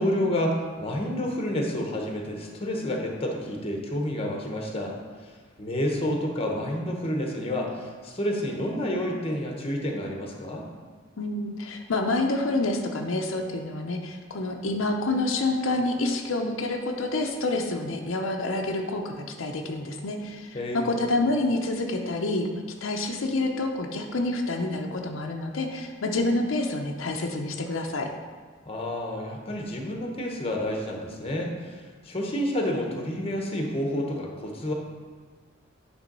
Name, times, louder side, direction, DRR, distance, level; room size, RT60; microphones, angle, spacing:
voice 1, 0.0-4.9 5.2-5.3 5.6-10.6 20.5-21.0 28.7-34.7, left 1 dB, 30° left, 1 dB, 1.0 m, -29 dB
voice 2, 11.2-28.1, left 2 dB, 80° left, 2 dB, 0.7 m, -28 dB
9.1 x 3.4 x 5.4 m, 1.5 s
head